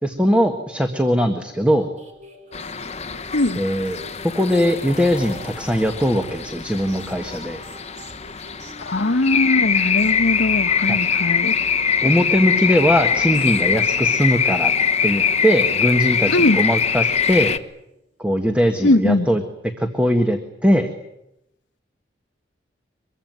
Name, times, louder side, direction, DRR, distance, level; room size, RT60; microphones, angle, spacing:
voice 1, 0.0-1.9 3.6-4.0 4.3-7.6 10.9-11.0 12.0-14.7 15.0-17.5 18.2-19.4 19.8-20.9, equal, 5° right, 5 dB, 1.6 m, -20 dB
sound 1, 1.5-17.9, equal, 40° right, 4.7 m, -47 dB
sound 2, 2.5-17.6, left 7 dB, 35° left, 1.0 m, -22 dB
voice 2, 8.8-11.5 16.3-16.6 18.8-19.3, left 2 dB, 75° left, 8 dB, 1.2 m, -20 dB
24.5 x 22.5 x 9.3 m, 0.83 s
head